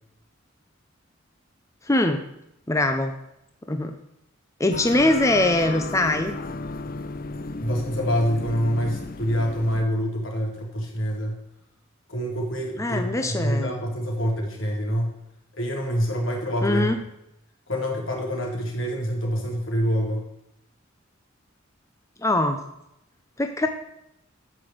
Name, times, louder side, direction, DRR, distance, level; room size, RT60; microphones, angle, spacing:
voice 1, 1.9-2.2 2.7-3.1 3.7-3.9 4.6-6.3 12.8-13.7 16.6-17.0 22.2-22.6 23.4-23.7, left 1 dB, 15° left, 6 dB, 0.7 m, -22 dB
sound 1, 4.7-9.8, left 3 dB, 45° left, 0.7 m, -34 dB
voice 2, 7.6-11.4 12.1-15.2 15.6-17.0 17.7-20.3, equal, 75° left, 0 dB, 3.7 m, -26 dB
13.5 x 6.2 x 7.9 m, 0.81 s
head